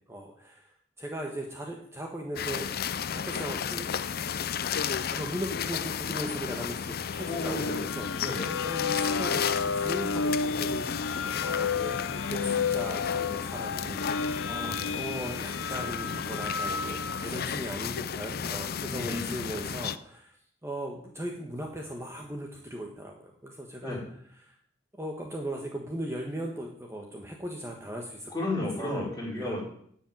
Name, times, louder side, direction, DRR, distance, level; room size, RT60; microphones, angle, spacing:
voice 1, 0.1-2.7 3.1-4.0 5.0-14.1 14.5-20.4 20.6-23.1 23.4-24.0 24.4-24.6 25.0-28.3 28.8-29.1 29.3-29.6, right 1 dB, 15° right, 1 dB, 1.4 m, -38 dB
sound 1, 2.4-20.0, left 7 dB, 55° left, 0.5 m, -33 dB
sound 2, 7.1-17.3, left 5 dB, 90° left, 0.7 m, -32 dB
voice 2, 7.2-7.8 8.2-8.7 14.4-15.0 18.9-19.2 23.8-24.0 28.3-29.6, left 1 dB, 20° left, -4 dB, 4.8 m, -33 dB
10.0 x 7.4 x 9.3 m, 0.65 s
head